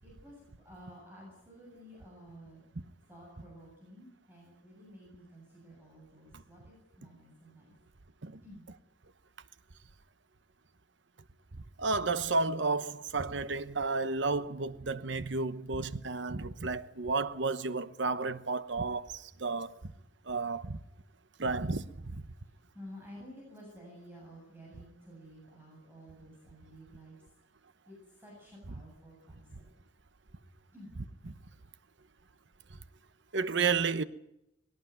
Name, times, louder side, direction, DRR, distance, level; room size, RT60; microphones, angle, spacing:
voice 1, 0.0-2.6 3.1-7.7 8.4-8.7 22.4-27.2 27.9-29.6 30.7-30.9, equal, 10° right, 7.6 m, -52 dB
voice 2, 11.8-19.7 20.3-20.8 21.4-22.2 33.3-34.0, right 4 dB, 65° right, 1.0 m, -32 dB
21.0 x 18.0 x 9.3 m
head